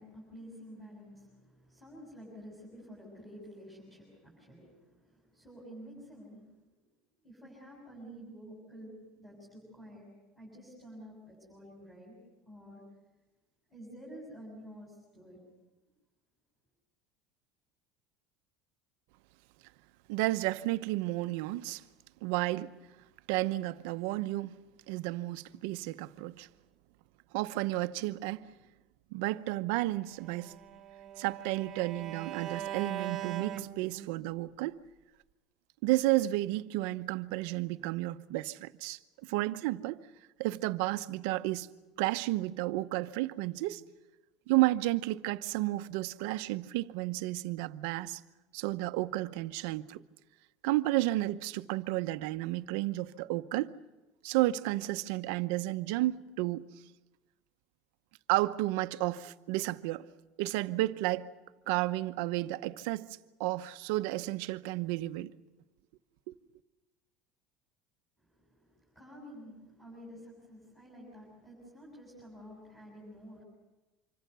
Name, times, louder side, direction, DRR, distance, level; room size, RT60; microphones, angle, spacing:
voice 1, 0.0-6.6 7.2-10.1 10.4-12.1 12.5-12.8 13.7-15.4 68.2-73.4, equal, 5° left, 7.0 m, -50 dB
voice 2, 20.1-21.8 22.2-22.7 23.3-24.6 24.9-26.5 27.3-28.5 29.1-30.5 31.2-34.8 35.8-40.0 40.4-41.7 42.0-43.8 44.5-48.2 48.5-50.0 50.6-53.7 54.2-56.7 58.3-60.0 60.4-61.3 61.7-63.1 63.4-65.3 66.3-66.4, right 17 dB, 70° right, 0.8 m, -32 dB
Bowed string instrument, 30.1-34.3, right 10 dB, 30° right, 1.1 m, -41 dB
26.0 x 24.5 x 6.8 m
cardioid pair, 170°, 0 cm